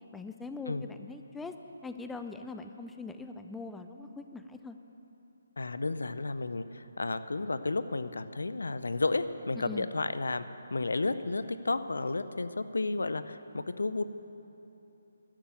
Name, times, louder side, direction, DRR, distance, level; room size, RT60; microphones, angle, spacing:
voice 1, 0.1-1.5 1.8-4.8 9.6-9.9, left 3 dB, 5° left, 7 dB, 0.4 m, -42 dB
voice 2, 5.6-10.4 10.7-14.0, left 3 dB, 80° left, 12 dB, 0.6 m, -32 dB
12.0 x 7.0 x 8.9 m, 3.0 s
figure-of-eight pair, 155°, 0 cm